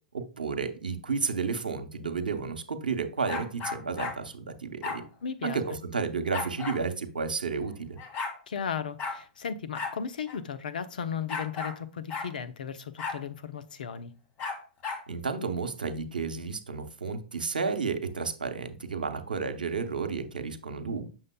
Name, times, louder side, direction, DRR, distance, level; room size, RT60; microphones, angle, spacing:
voice 1, 0.1-5.0 5.4-8.0 15.1-21.1, right 5 dB, 90° right, 0.8 m, -32 dB
sound 1, 3.3-4.2 4.8-5.0 6.3-6.8 7.7-7.8 8.0-8.4 9.0-9.2 9.7-10.0 10.3-10.4 11.3-11.8 12.1-12.3 13.0-13.2 14.4-15.0, left 5 dB, 35° left, 2.0 m, -34 dB
voice 2, 5.2-5.6 8.5-14.1, left 7 dB, 75° left, 0.6 m, -35 dB
7.2 x 6.3 x 2.2 m
hypercardioid pair, 110°, 5 cm